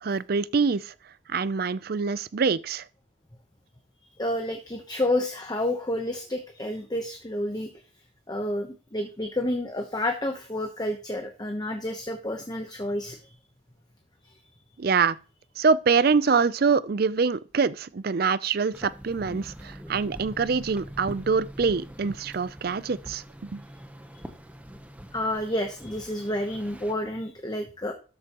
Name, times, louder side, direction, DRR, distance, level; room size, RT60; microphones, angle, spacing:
voice 1, 0.0-0.9 1.3-2.8 14.8-15.2 15.6-23.6, right 5 dB, 50° right, 0.5 m, -25 dB
voice 2, 4.0-7.7 8.3-13.2 25.1-27.9, left 1 dB, 20° left, 0.9 m, -30 dB
sound 1, 18.7-26.9, equal, 5° right, 0.8 m, -43 dB
13.0 x 7.9 x 3.0 m
head